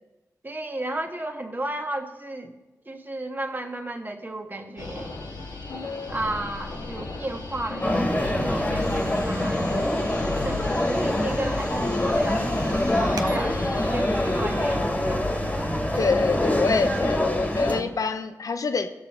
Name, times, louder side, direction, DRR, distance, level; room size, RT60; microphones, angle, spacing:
voice 1, 0.4-2.6 2.8-5.1 6.1-10.1 10.4-13.6 13.9-15.3, right 1 dB, 30° right, 3 dB, 1.5 m, -33 dB
sound 1, 4.8-14.8, left 2 dB, 80° left, 1.7 m, -34 dB
sound 2, 7.8-17.8, left 1 dB, 20° left, 1.8 m, -25 dB
sound 3, 7.9-17.3, right 4 dB, 70° right, 0.9 m, -40 dB
voice 2, 16.0-18.9, left 4 dB, 60° left, 9 dB, 0.8 m, -26 dB
16.0 x 7.1 x 4.4 m, 1.1 s
cardioid pair, 45°, 7 cm